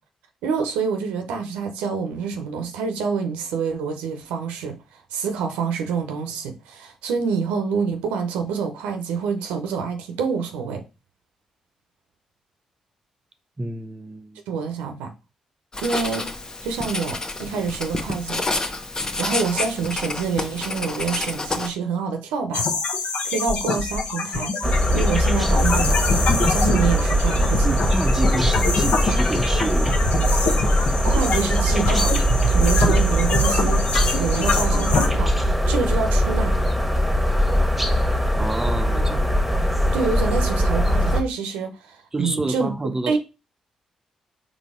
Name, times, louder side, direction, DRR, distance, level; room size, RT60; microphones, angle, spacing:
voice 1, 0.4-10.8 14.5-15.1 15.8-16.3 16.6-18.4 19.2-22.7 23.2-27.9 31.0-32.1 32.5-33.8 34.2-36.5 39.9-42.7 43.1-43.2, right 5 dB, 80° right, 0.7 m, -27 dB
voice 2, 13.6-14.4 27.6-30.0 38.4-39.3 42.1-43.2, right 2 dB, 25° right, 0.6 m, -28 dB
Writing, 15.7-21.7, left 2 dB, 30° left, 0.9 m, -29 dB
sound 1, 22.5-35.1, left 4 dB, 65° left, 0.9 m, -25 dB
sound 2, 24.6-41.2, equal, 5° right, 1.3 m, -20 dB
4.1 x 3.2 x 3.7 m
hypercardioid pair, 45°, 2 cm